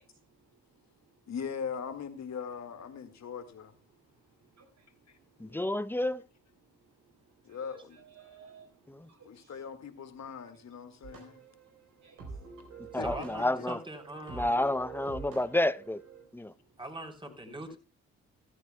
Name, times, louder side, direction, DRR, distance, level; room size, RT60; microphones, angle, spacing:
voice 1, 0.0-1.3 3.0-3.3 3.9-5.9 6.6-9.7 10.0-13.0 16.2-16.8, right 5 dB, 65° right, 2.3 m, -62 dB
voice 2, 1.3-3.7 5.4-5.6 7.5-8.0 9.3-11.4 13.0-13.1 13.6-13.7 17.7-17.8, left 6 dB, 60° left, 1.9 m, -40 dB
voice 3, 5.4-6.2 12.9-13.8 14.3-16.0 16.3-16.5, left 1 dB, 5° left, 0.7 m, -29 dB
sound 1, 11.0-16.2, right 5 dB, 80° right, 4.0 m, -46 dB
voice 4, 12.9-14.6 16.8-17.8, right 1 dB, 15° right, 3.7 m, -42 dB
14.5 x 13.5 x 2.2 m
hypercardioid pair, 45°, 31 cm